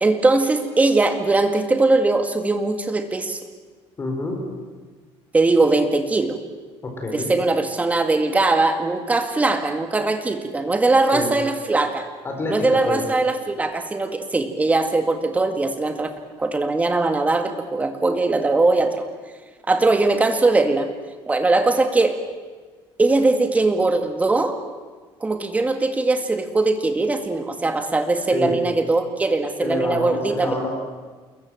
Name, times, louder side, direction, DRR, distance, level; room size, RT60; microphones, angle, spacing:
voice 1, 0.0-3.4 5.3-6.4 7.1-12.1 12.5-16.1 16.4-19.1 19.7-20.9 21.3-22.2 23.0-24.6 25.2-30.5, right 3 dB, 15° right, 7 dB, 2.0 m, -20 dB
voice 2, 4.0-4.4 6.8-7.3 11.1-11.4 12.2-13.0 28.3-28.7 29.6-30.7, left 2 dB, 20° left, 2 dB, 4.6 m, -27 dB
28.5 x 22.0 x 7.8 m, 1.4 s
cardioid pair, 160°, 11 cm